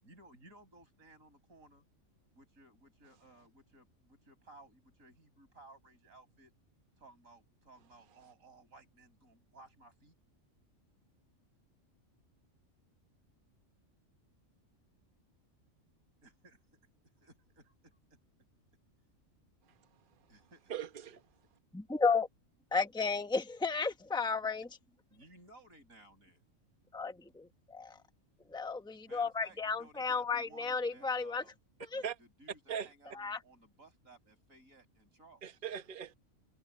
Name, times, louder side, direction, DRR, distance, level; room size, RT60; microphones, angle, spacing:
voice 1, 0.0-1.8 2.3-6.5 7.0-10.1 16.2-16.6 17.2-18.2 20.3-20.7 25.1-26.4 29.0-31.6 31.9-35.4, right 2 dB, 90° right, 6.4 m, -59 dB
voice 2, 20.7-21.2 32.0-32.2 32.7-32.9 35.4-36.1, right 8 dB, 40° right, 1.2 m, -40 dB
voice 3, 21.7-22.3 22.7-24.7 26.9-28.0 28.5-31.4 31.9-32.0 33.2-33.4, left 4 dB, 5° left, 1.1 m, -33 dB
omnidirectional pair, 1.4 m